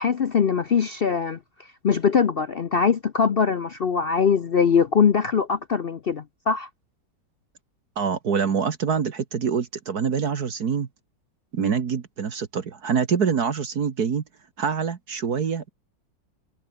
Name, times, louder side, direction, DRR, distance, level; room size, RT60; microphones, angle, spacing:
voice 1, 0.0-1.4 1.8-6.7, left 6 dB, 55° left, 0.6 m, -22 dB
voice 2, 8.0-10.9 11.5-14.2 14.6-15.7, right 6 dB, 60° right, 2.0 m, -25 dB
omnidirectional pair, 1.9 m